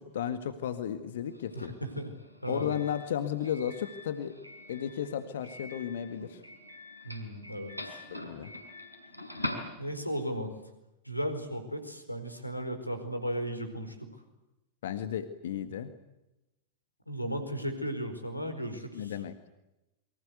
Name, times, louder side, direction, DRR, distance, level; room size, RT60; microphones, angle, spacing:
voice 1, 0.0-1.8 2.5-4.4 4.7-6.4 8.3-8.5 14.8-15.9 19.0-19.3, left 9 dB, 60° left, 10 dB, 1.8 m, -34 dB
Doorbell, 1.2-10.3, left 1 dB, 90° right, 5.7 m, -44 dB
voice 2, 1.5-2.1 2.4-2.7 7.0-8.0 9.8-10.5 11.0-14.1 17.1-19.2, equal, 90° left, 8 dB, 4.7 m, -35 dB
28.5 x 24.0 x 8.1 m, 0.95 s
figure-of-eight pair, 90°, 0 cm